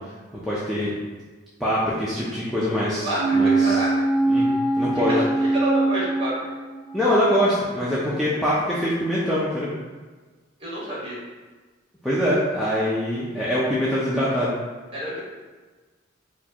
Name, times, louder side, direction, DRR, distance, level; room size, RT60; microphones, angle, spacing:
voice 1, 0.4-0.9 1.6-3.8 4.3-4.5 4.8-5.1 6.9-9.7 12.0-14.5, equal, ahead, -10 dB, 0.5 m, -23 dB
voice 2, 3.0-4.1 5.1-6.4 10.6-11.2 14.9-15.2, right 1 dB, 30° right, -6 dB, 1.2 m, -28 dB
sound 1, 3.1-6.9 7.2-7.3, right 2 dB, 55° right, 0.6 m, -22 dB
4.3 x 2.3 x 2.8 m, 1.3 s
head